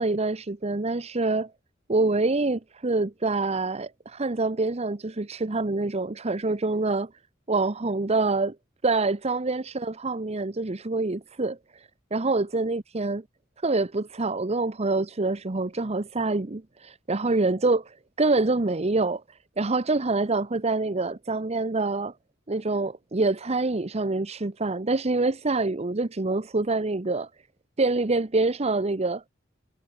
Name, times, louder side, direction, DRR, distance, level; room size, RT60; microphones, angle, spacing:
voice 1, 0.0-1.5 1.9-7.1 7.5-8.5 8.8-13.2 13.6-19.2 19.6-22.1 22.5-27.3 27.8-29.2, right 3 dB, 35° right, 0.9 m, -26 dB
head